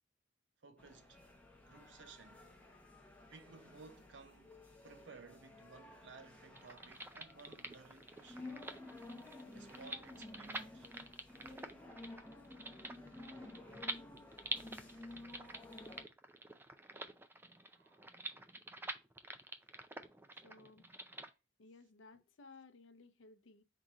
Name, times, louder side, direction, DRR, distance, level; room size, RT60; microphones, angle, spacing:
voice 1, 0.6-1.2 1.6-2.4 3.3-4.5 4.8-8.7 9.5-10.9 17.7-18.1, right 4 dB, 65° right, 0.6 m, -58 dB
sound 1, 0.8-16.0, left 2 dB, 10° left, 0.8 m, -54 dB
sound 2, 6.5-21.3, right 2 dB, 10° right, 0.4 m, -48 dB
voice 2, 20.4-21.0 21.6-23.6, left 3 dB, 75° left, 0.6 m, -59 dB
3.8 x 2.8 x 4.7 m
head